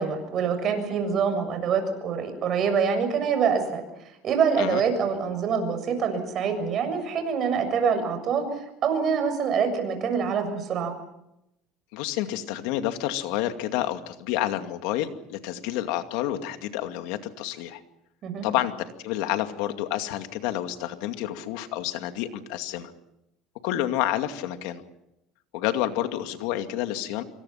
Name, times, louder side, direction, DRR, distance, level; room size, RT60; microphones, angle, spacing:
voice 1, 0.0-3.8 4.2-10.9 18.2-18.5, right 6 dB, 40° right, 7 dB, 7.1 m, -25 dB
voice 2, 11.9-17.8 18.4-18.7 19.0-22.9 23.6-24.8 25.5-27.2, left 13 dB, 75° left, 7 dB, 2.3 m, -29 dB
27.0 x 24.5 x 5.8 m, 0.83 s
cardioid pair, 130°, 0 cm